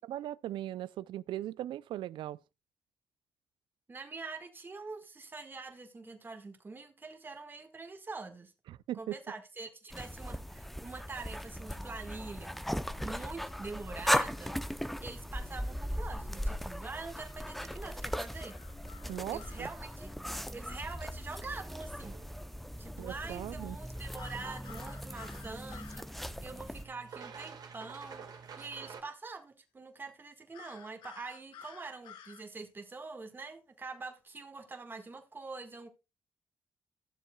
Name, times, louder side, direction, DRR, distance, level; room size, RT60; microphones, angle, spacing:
voice 1, 0.0-2.4 8.7-9.2 19.1-19.7 23.0-23.8, right 13 dB, 80° right, 0.4 m, -39 dB
voice 2, 3.9-8.5 8.9-12.6 13.0-14.6 15.0-18.6 19.3-20.1 20.5-22.2 22.8-35.9, right 3 dB, 25° right, 1.6 m, -45 dB
sound 1, 9.9-26.8, equal, ahead, 0.6 m, -38 dB
sound 2, 18.4-19.8 24.2-26.1 30.5-32.4, left 9 dB, 90° left, 1.2 m, -52 dB
sound 3, 18.6-29.0, right 6 dB, 55° right, 1.7 m, -53 dB
14.0 x 7.2 x 2.3 m
cardioid pair, 110°, 8 cm